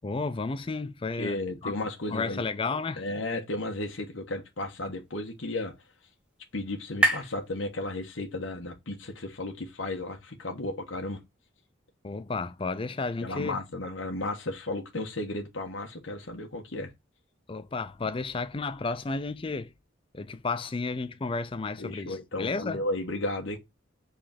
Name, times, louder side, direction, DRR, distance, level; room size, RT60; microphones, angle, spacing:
voice 1, 0.0-1.4 1.6-1.7 2.1-3.1 12.0-13.6 17.5-19.7 20.1-22.8, left 3 dB, 25° left, 0.4 m, -32 dB
voice 2, 1.2-2.4 3.0-5.7 6.5-11.2 13.2-16.9 21.8-23.6, left 2 dB, 80° left, 1.4 m, -34 dB
sound 1, 4.7-8.4, right 1 dB, 5° right, 1.2 m, -33 dB
5.1 x 4.1 x 5.8 m
head